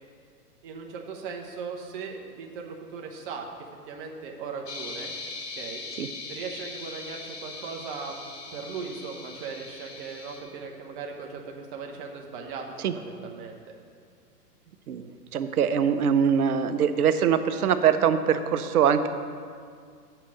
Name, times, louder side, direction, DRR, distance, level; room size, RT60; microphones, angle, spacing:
voice 1, 0.6-3.5 3.9-5.1 5.6-5.8 6.3-8.1 8.5-13.6, right 5 dB, 35° right, 1 dB, 0.9 m, -38 dB
sound 1, 4.7-10.4, left 3 dB, 85° left, 1.4 m, -40 dB
voice 2, 14.9-19.1, right 8 dB, 65° right, 10 dB, 0.7 m, -23 dB
6.4 x 5.9 x 7.0 m, 2.1 s
hypercardioid pair, 130°, 47 cm